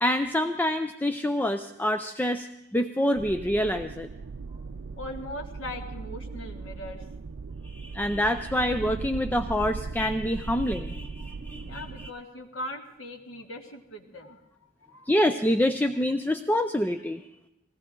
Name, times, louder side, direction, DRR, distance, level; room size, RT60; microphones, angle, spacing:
voice 1, 0.0-4.1 7.6-12.1 15.1-17.2, left 1 dB, 10° left, 7 dB, 0.5 m, -26 dB
sound 1, 3.1-12.1, right 4 dB, 85° right, 0.5 m, -38 dB
voice 2, 5.0-7.1 11.3-15.1, left 1 dB, 90° left, 2 dB, 2.3 m, -40 dB
20.5 x 17.0 x 3.8 m, 0.89 s
head